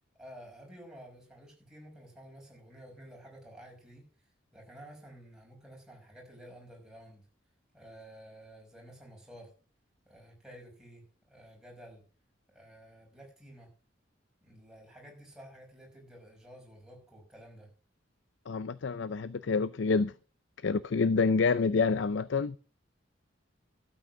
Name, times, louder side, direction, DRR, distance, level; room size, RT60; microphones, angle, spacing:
voice 1, 0.1-7.3 7.7-9.5 10.1-12.0 12.5-13.7 14.4-17.7, equal, 5° right, 5.7 m, -52 dB
voice 2, 18.5-20.1 20.6-22.6, left 4 dB, 70° left, 0.5 m, -27 dB
12.5 x 8.0 x 6.1 m
head